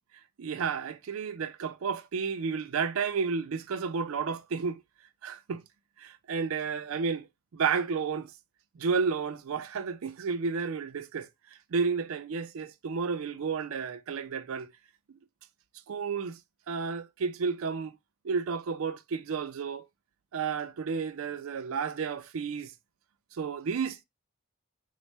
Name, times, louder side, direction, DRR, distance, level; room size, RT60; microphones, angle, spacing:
voice 1, 0.4-4.8 5.2-5.6 6.0-7.3 7.5-8.3 8.8-11.3 11.7-14.7 15.9-16.4 16.7-18.0 18.2-19.8 20.3-22.7 23.3-24.0, right 5 dB, 80° right, 0.4 m, -31 dB
4.0 x 2.1 x 3.2 m
head